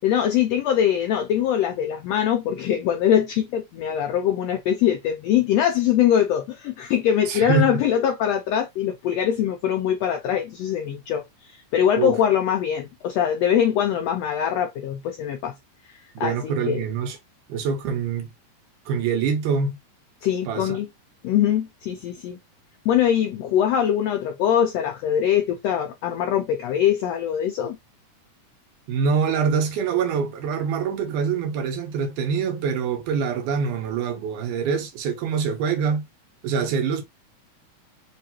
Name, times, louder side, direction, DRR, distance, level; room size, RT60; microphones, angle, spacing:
voice 1, 0.0-15.5 16.2-16.8 20.2-20.9 21.2-22.4 22.8-27.8, left 9 dB, 85° left, 1.4 m, -22 dB
voice 2, 7.3-7.8 12.0-12.2 16.2-17.2 17.5-18.3 18.9-19.8 20.5-20.8 28.9-36.1 36.4-37.0, right 6 dB, 85° right, 2.4 m, -25 dB
5.1 x 2.4 x 2.8 m
omnidirectional pair, 3.5 m